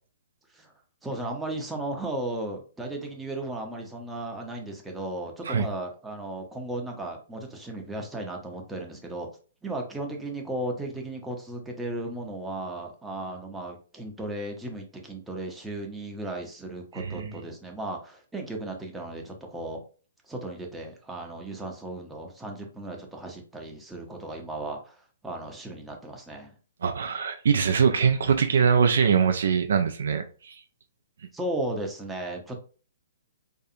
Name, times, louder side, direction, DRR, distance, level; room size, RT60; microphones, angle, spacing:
voice 1, 1.0-9.3 9.6-19.8 20.3-26.5 31.3-32.6, right 1 dB, 5° right, 0.6 m, -35 dB
voice 2, 16.9-17.3 26.8-30.6, right 6 dB, 65° right, 0.3 m, -23 dB
2.7 x 2.3 x 2.6 m
figure-of-eight pair, 125°, 0 cm